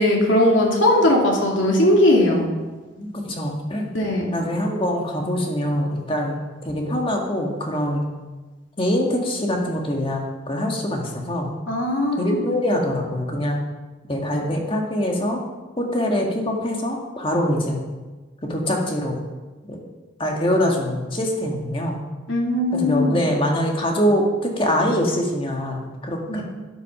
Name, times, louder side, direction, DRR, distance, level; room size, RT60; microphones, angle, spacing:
voice 1, 0.0-2.5 3.9-4.3 11.7-12.4 22.3-23.2 26.3-26.4, left 1 dB, 85° left, -1 dB, 2.8 m, -19 dB
voice 2, 3.0-3.9 4.3-6.4 6.6-8.0 8.8-11.5 12.2-13.6 14.1-15.4 15.8-17.8 18.4-19.2 19.6-19.8 20.2-22.0 22.7-26.4, equal, 30° left, 1 dB, 1.9 m, -23 dB
12.5 x 8.2 x 5.6 m, 1.2 s
head